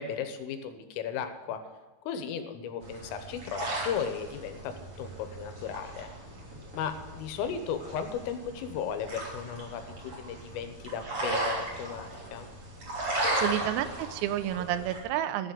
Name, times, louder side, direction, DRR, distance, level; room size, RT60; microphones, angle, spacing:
voice 1, 0.0-1.6 2.1-4.7 5.0-6.1 6.7-12.5, left 7 dB, 80° left, 8 dB, 3.6 m, -35 dB
sound 1, 2.8-15.0, right 1 dB, 30° right, 3.4 m, -36 dB
voice 2, 13.4-15.5, right 12 dB, 90° right, 11 dB, 3.5 m, -30 dB
15.0 x 7.7 x 7.8 m, 1.2 s
omnidirectional pair, 5.9 m